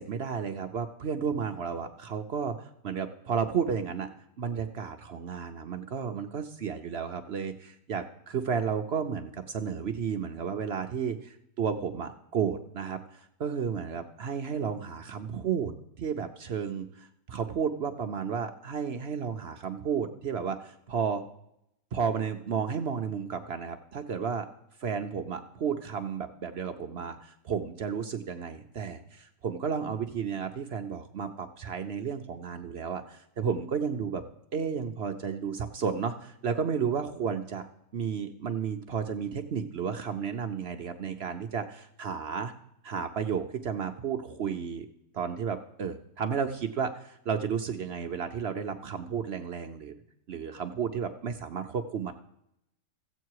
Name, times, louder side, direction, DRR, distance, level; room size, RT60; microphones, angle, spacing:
voice 1, 0.0-4.1 4.4-15.7 16.0-21.2 21.9-24.5 24.8-34.2 34.5-37.7 37.9-42.5 42.8-44.9 45.1-49.9 50.3-52.1, right 6 dB, 65° right, 6 dB, 0.6 m, -32 dB
15.0 x 8.1 x 4.7 m, 0.79 s
omnidirectional pair, 1.9 m